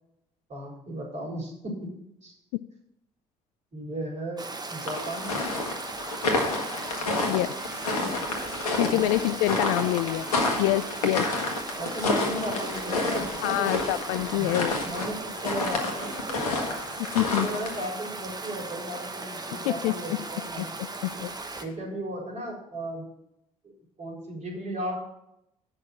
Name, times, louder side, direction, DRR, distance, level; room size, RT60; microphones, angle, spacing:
voice 1, 0.5-1.9 2.2-2.3 3.7-4.4 4.7-5.6 8.0-8.1 8.9-9.2 11.8-13.8 14.3-16.5 17.2-20.7 21.1-21.3 21.6-23.1 23.6-23.7 24.0-25.0, right 1 dB, 40° right, -2 dB, 4.5 m, -35 dB
Stream, 4.4-21.6, right 3 dB, 20° right, 1.3 m, -37 dB
sound 1, 4.9-17.9, left 2 dB, 80° left, 1.3 m, -30 dB
voice 2, 8.8-11.3 13.4-14.8 17.1-17.5 19.7-19.9 20.6-20.7 21.0-21.3, left 17 dB, 65° left, 16 dB, 0.4 m, -26 dB
9.1 x 6.5 x 7.3 m, 0.80 s
figure-of-eight pair, 50°, 19 cm